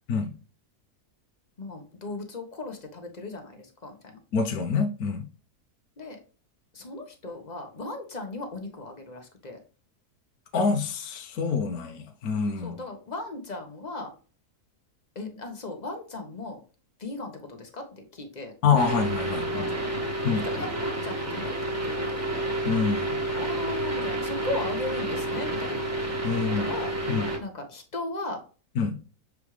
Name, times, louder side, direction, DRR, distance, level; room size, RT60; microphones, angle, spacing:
voice 1, 1.6-4.2 6.0-6.2 6.7-9.6 12.6-14.1 15.1-16.6 17.0-18.5 18.8-19.0 19.4-22.2 23.3-25.8 26.3-27.1 27.4-28.4, left 2 dB, 30° left, 1.3 m, -37 dB
voice 2, 4.3-5.3 10.5-12.8 18.6-19.7 20.2-20.5 22.6-23.2 26.2-26.7 27.1-27.3 28.8-29.0, left 5 dB, 65° left, 1.3 m, -26 dB
sound 1, 18.8-27.4, right 1 dB, 10° right, 1.3 m, -30 dB
7.1 x 4.8 x 3.3 m
omnidirectional pair, 1.7 m